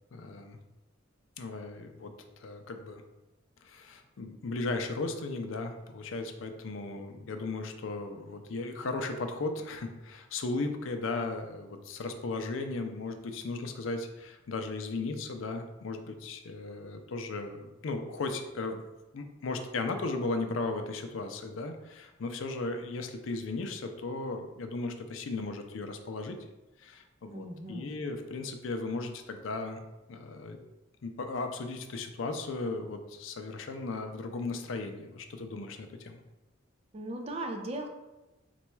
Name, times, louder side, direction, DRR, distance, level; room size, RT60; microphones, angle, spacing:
voice 1, 0.1-0.6 1.4-2.1 2.4-3.0 3.6-18.8 19.1-26.4 26.8-29.8 30.1-30.6 31.0-36.2, left 3 dB, 80° left, 6 dB, 0.5 m, -36 dB
voice 2, 27.3-27.9 36.9-37.9, right 1 dB, 30° right, 3 dB, 0.5 m, -37 dB
4.0 x 2.2 x 4.5 m, 1.1 s
head